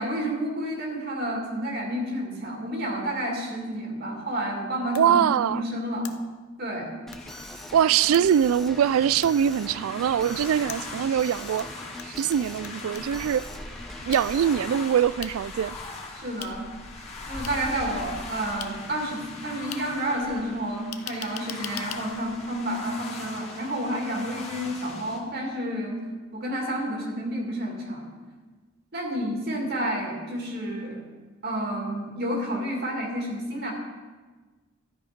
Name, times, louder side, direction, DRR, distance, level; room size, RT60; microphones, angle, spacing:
voice 1, 0.0-6.1 6.6-6.9 16.2-16.7 17.3-26.0 26.3-28.1 28.9-31.0 31.4-33.7, right 1 dB, 50° right, 2.4 m, -30 dB
sound 1, 4.9-5.1 6.0-6.1 7.1-7.2 8.1-8.2 9.2-9.3 10.7-11.6 12.0-13.2 14.1-14.2 15.2-15.3 16.4-16.5 17.4-17.5 18.6-18.7 19.7-19.8 20.9-22.0, left 10 dB, 90° left, 0.7 m, -39 dB
voice 2, 5.0-5.6 7.7-11.7 12.1-13.5 14.1-15.8, right 9 dB, 80° right, 0.3 m, -23 dB
Alarm, 7.1-14.9, left 1 dB, ahead, 0.7 m, -42 dB
sound 2, 7.2-25.2, left 3 dB, 30° left, 1.8 m, -41 dB
12.5 x 9.6 x 5.1 m
head